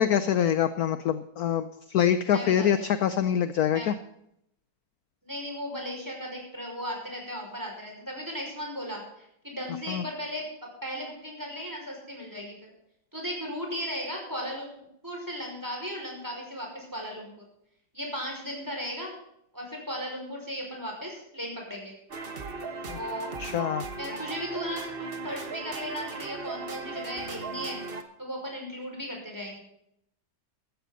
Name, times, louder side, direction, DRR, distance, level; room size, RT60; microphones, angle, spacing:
voice 1, 0.0-3.9 9.9-10.0 22.9-23.0 23.4-23.9, left 9 dB, 65° left, 12 dB, 1.1 m, -25 dB
voice 2, 2.3-2.9 3.7-3.9 5.2-12.5 13.1-17.3 17.9-19.1 19.5-21.9 22.9-23.4 24.0-27.8 28.2-29.6, equal, 10° right, 0 dB, 5.6 m, -36 dB
sound 1, 22.1-28.0, right 4 dB, 35° right, 1.3 m, -37 dB
15.0 x 14.0 x 4.0 m, 0.75 s
omnidirectional pair, 2.0 m